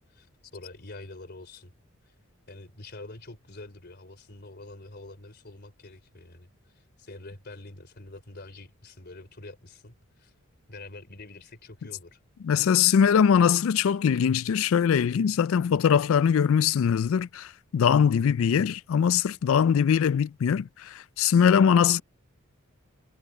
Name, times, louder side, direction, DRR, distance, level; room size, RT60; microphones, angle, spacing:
voice 1, 0.5-1.7 2.1-2.2 2.5-10.3 10.7-12.2, left 2 dB, 50° left, 3.7 m, -46 dB
voice 2, 12.4-22.0, left 7 dB, 65° left, 0.3 m, -22 dB
head